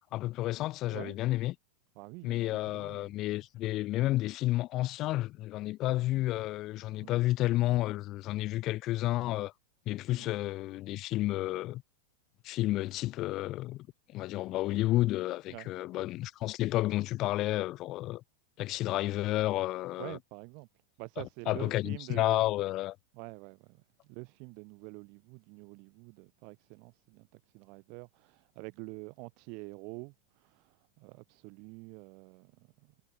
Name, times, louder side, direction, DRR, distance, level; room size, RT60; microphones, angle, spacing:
voice 1, 0.1-1.5 2.2-9.5 9.9-11.8 12.4-13.9 14.1-18.2 18.6-20.2 21.5-23.0, left 16 dB, 35° left, 2.2 m, -31 dB
voice 2, 2.0-3.1 7.0-7.2 10.2-10.3 15.5-15.7 20.0-20.7 21.0-22.4 23.1-32.9, right 33 dB, 45° right, 2.8 m, -47 dB
figure-of-eight pair, 90°, 0 cm